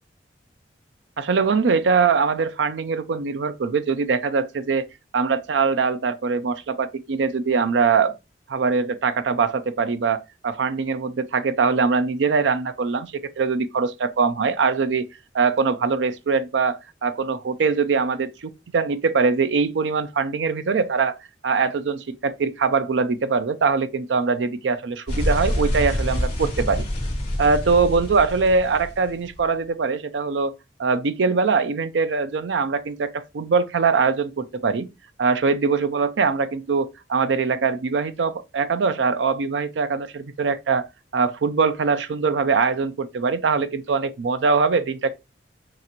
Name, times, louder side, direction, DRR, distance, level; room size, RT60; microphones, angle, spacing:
voice 1, 1.2-4.9 5.1-8.1 8.5-15.1 15.3-21.1 21.4-26.9 27.4-30.5 30.8-34.9 35.2-40.9 41.1-45.2, right 5 dB, 90° right, 0.5 m, -22 dB
sound 1, 25.1-29.4, left 1 dB, 30° left, 2.1 m, -26 dB
6.0 x 2.5 x 2.9 m
head